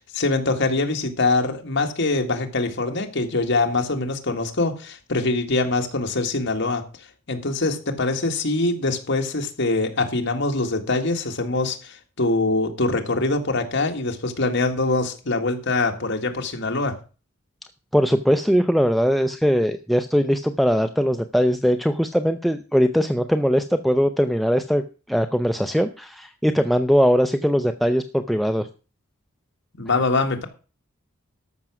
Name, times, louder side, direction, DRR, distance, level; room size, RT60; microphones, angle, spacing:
voice 1, 0.0-6.9 7.3-16.9 29.7-30.4, left 2 dB, 60° left, 4 dB, 1.9 m, -23 dB
voice 2, 17.9-24.8 25.1-28.7, equal, ahead, 7 dB, 0.5 m, -20 dB
13.5 x 6.1 x 6.0 m, 0.35 s
head